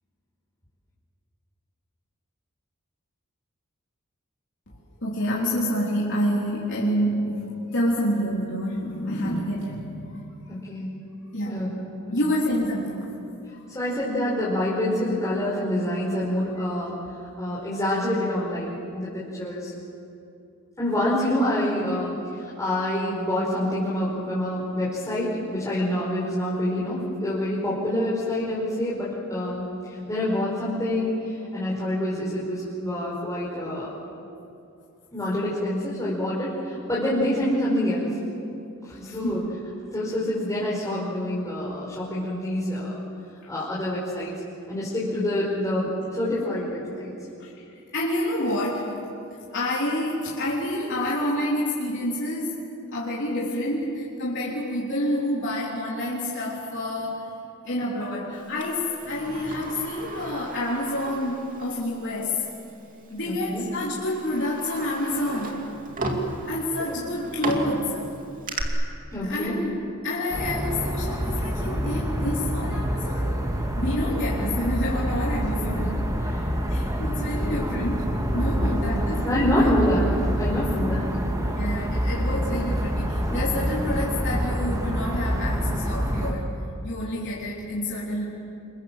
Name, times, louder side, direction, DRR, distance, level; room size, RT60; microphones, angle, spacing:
voice 1, 5.0-10.5 11.3-11.6 12.1-13.2 13.5-13.6 39.0-39.4 47.4-47.6 47.9-48.9 49.5-52.6 52.9-57.3 57.6-62.5 63.1-65.6 66.5-68.1 69.2-69.7 70.0-73.4 73.8-75.9 76.6-79.7 80.5-80.7 81.5-86.5 86.8-88.2, left 1 dB, 60° left, -6 dB, 3.6 m, -28 dB
voice 2, 10.5-10.9 11.4-11.7 13.7-16.9 17.4-19.7 20.8-33.9 35.1-38.1 38.8-39.4 39.9-42.9 43.5-44.3 44.7-47.1 63.2-63.6 66.8-67.0 69.1-69.5 75.6-75.9 76.2-76.4 78.5-79.0 79.2-80.1 80.3-81.1, left 1 dB, 15° left, -8 dB, 5.0 m, -27 dB
Sliding door, 58.6-61.8 62.2-62.3 63.2-63.4 63.9-68.6, right 2 dB, 40° right, 2.7 m, -34 dB
sound 1, 70.3-86.3, equal, 15° right, 2.5 m, -26 dB
28.5 x 23.5 x 7.5 m, 2.6 s
head